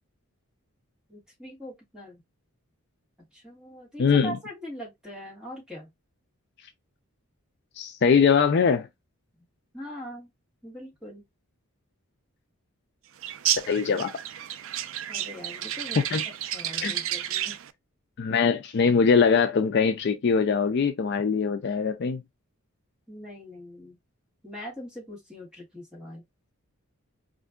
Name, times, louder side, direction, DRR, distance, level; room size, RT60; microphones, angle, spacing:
voice 1, 1.1-2.2 3.3-5.9 9.7-10.3 10.6-11.2 15.1-16.0 16.5-17.5 23.1-24.0 24.4-26.2, equal, 5° right, 1.6 m, -41 dB
voice 2, 4.0-4.4 7.8-8.9 13.7-14.1 16.0-16.2 16.8-17.0 18.2-22.2, left 5 dB, 50° left, 0.4 m, -22 dB
sound 1, 13.2-17.7, right 11 dB, 60° right, 0.3 m, -31 dB
4.3 x 2.5 x 2.3 m
head